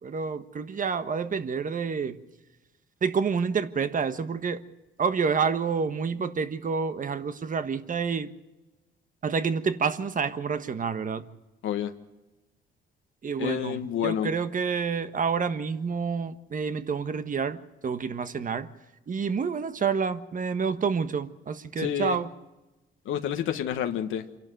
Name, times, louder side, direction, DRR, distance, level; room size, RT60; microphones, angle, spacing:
voice 1, 0.0-2.2 3.0-4.6 5.0-8.3 9.2-11.2 13.2-18.7 19.1-22.3, right 5 dB, 40° right, 11 dB, 1.4 m, -28 dB
voice 2, 13.4-14.3 21.8-22.2 23.0-24.2, left 9 dB, 80° left, 6 dB, 1.4 m, -29 dB
26.5 x 12.0 x 9.3 m, 1.1 s
cardioid pair, 90°, 20 cm